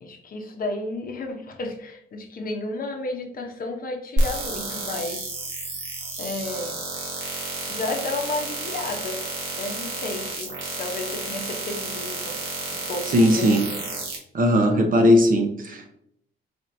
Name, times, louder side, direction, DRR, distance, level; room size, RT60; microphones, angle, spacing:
voice 1, 0.0-5.2 6.2-6.8 7.7-9.2 9.5-12.4 12.7-13.8, left 2 dB, 45° left, 2 dB, 0.8 m, -32 dB
sound 1, 4.2-14.2, right 2 dB, 80° right, 1.3 m, -30 dB
voice 2, 13.1-13.6 14.3-15.9, equal, 45° right, 4 dB, 0.8 m, -18 dB
4.2 x 2.9 x 2.6 m, 0.75 s
cardioid pair, 90°, 20 cm